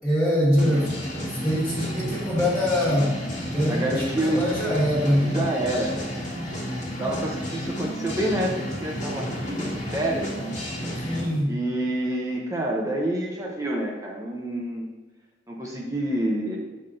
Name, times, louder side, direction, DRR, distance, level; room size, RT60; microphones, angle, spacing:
voice 1, 0.0-5.4 11.0-11.6, equal, ahead, -10 dB, 1.8 m, -24 dB
sound 1, 0.6-11.3, equal, 40° left, 1.5 m, -32 dB
voice 2, 3.7-4.4 5.2-6.2 7.0-10.5 11.5-14.9 15.5-16.6, right 1 dB, 20° right, -1 dB, 0.7 m, -28 dB
8.1 x 5.7 x 2.5 m, 1.2 s
head